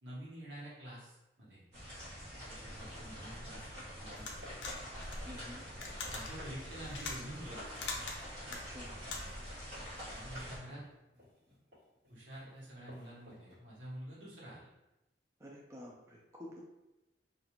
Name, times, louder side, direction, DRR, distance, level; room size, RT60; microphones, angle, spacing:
voice 1, 0.0-1.6 2.5-3.7 4.0-4.4 6.1-8.0 10.1-10.8 12.1-14.7, right 1 dB, 85° right, -7 dB, 1.1 m, -48 dB
sound 1, 1.7-10.6, equal, 35° right, 1.0 m, -46 dB
sound 2, 3.8-4.0 4.4-5.3 5.9-6.0 6.3-13.5, equal, 55° right, 1.4 m, -59 dB
sound 3, 4.2-9.5, left 3 dB, 80° left, 0.5 m, -44 dB
voice 2, 5.2-5.7 8.5-9.0 15.4-16.6, left 1 dB, 15° right, -3 dB, 0.3 m, -50 dB
2.4 x 2.4 x 2.9 m, 0.96 s
head